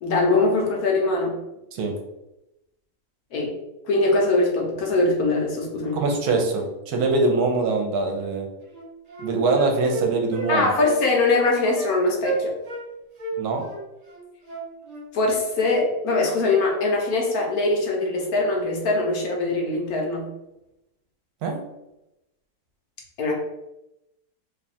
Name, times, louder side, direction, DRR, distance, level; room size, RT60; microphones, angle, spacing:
voice 1, 0.0-1.4 3.3-3.6 3.8-6.0 10.5-12.5 15.1-20.3 23.2-23.3, left 2 dB, 70° left, -1 dB, 1.3 m, -22 dB
voice 2, 5.9-8.5 9.2-10.7 13.4-13.7 21.4-21.6, right 3 dB, 75° right, 3 dB, 1.2 m, -23 dB
Wind instrument woodwind instrument, 8.3-8.4 8.7-10.5 10.8-11.0 11.2-11.4 11.7-11.9 12.2-12.9 13.2-15.1, right 2 dB, 55° right, 0.4 m, -32 dB
3.1 x 2.3 x 4.1 m, 0.90 s
omnidirectional pair, 1.7 m